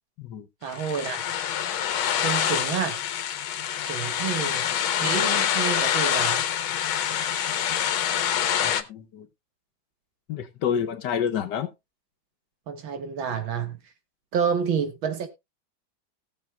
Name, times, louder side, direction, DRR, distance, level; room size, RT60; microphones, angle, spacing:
voice 1, 0.6-1.2 2.2-3.0 3.8-4.8 5.0-6.4 12.7-13.8 14.3-15.3, right 7 dB, 80° right, 2.2 m, -29 dB
sound 1, 0.7-8.8, left 9 dB, 80° left, 1.6 m, -26 dB
voice 2, 8.6-9.3 10.3-11.7, left 8 dB, 65° left, 1.4 m, -29 dB
18.5 x 7.0 x 2.2 m
omnidirectional pair, 2.2 m